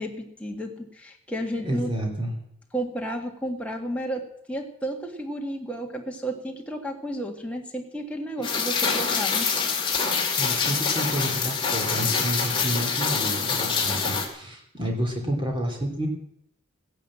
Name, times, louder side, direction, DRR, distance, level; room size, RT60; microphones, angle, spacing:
voice 1, 0.0-1.9 2.7-9.5, right 1 dB, 5° left, 1 dB, 1.7 m, -32 dB
voice 2, 1.6-2.3 8.4-8.5 10.4-16.1, right 1 dB, 20° right, 2 dB, 3.2 m, -30 dB
Rain, 8.4-14.3, left 5 dB, 20° left, 2.3 m, -25 dB
15.5 x 10.5 x 7.5 m, 0.74 s
head